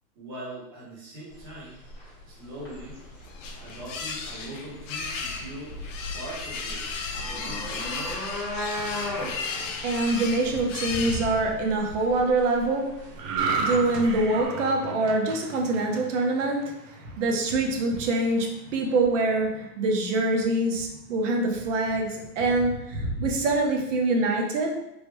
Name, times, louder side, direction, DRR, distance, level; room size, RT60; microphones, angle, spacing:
voice 1, 0.2-1.8 2.2-3.0 3.6-5.8 6.1-6.9 7.2-8.0, right 1 dB, 20° right, -7 dB, 0.3 m, -41 dB
sound 1, 1.3-14.5, left 1 dB, 5° left, 1.0 m, -38 dB
sound 2, 2.8-11.7, left 4 dB, 55° left, 0.5 m, -35 dB
voice 2, 8.8-24.7, right 2 dB, 50° right, 2 dB, 0.7 m, -25 dB
sound 3, 13.2-16.7 17.1-17.3, right 4 dB, 85° right, 0.7 m, -31 dB
3.1 x 2.1 x 2.9 m, 0.89 s
hypercardioid pair, 150°, 46 cm